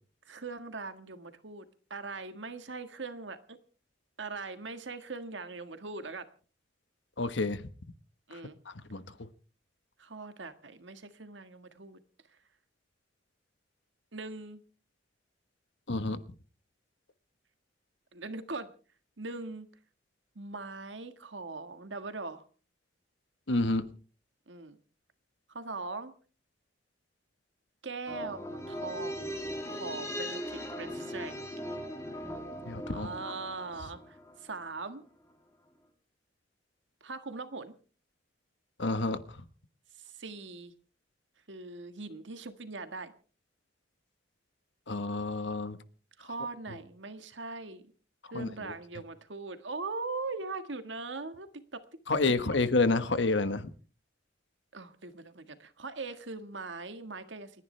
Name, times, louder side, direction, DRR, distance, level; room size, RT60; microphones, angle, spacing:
voice 1, 0.2-3.6 4.2-6.3 8.3-8.6 10.0-12.0 14.1-14.6 18.1-18.7 19.2-19.7 20.3-22.4 24.5-24.8 25.5-26.1 27.8-29.3 29.7-31.5 32.9-35.0 37.0-37.7 40.0-40.7 41.5-43.1 46.2-47.8 48.3-51.5 51.7-51.8 54.7-57.5, right 3 dB, 80° right, 1.6 m, -41 dB
voice 2, 7.2-7.7 8.9-9.0 15.9-16.2 23.5-23.8 32.7-33.1 38.8-39.2 44.9-45.8 48.3-48.7 52.1-53.7, left 3 dB, 75° left, 1.3 m, -29 dB
sound 1, 28.1-34.7 34.9-35.0, equal, 15° left, 2.8 m, -39 dB
29.5 x 10.5 x 3.3 m
head